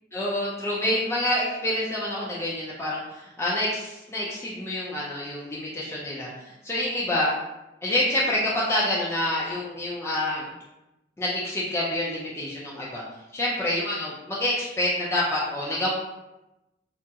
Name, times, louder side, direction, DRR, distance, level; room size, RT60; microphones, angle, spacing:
voice 1, 0.1-7.3 7.8-10.5 11.2-13.0 13.3-15.9, left 1 dB, 15° left, -6 dB, 0.4 m, -27 dB
2.8 x 2.3 x 2.7 m, 0.96 s
head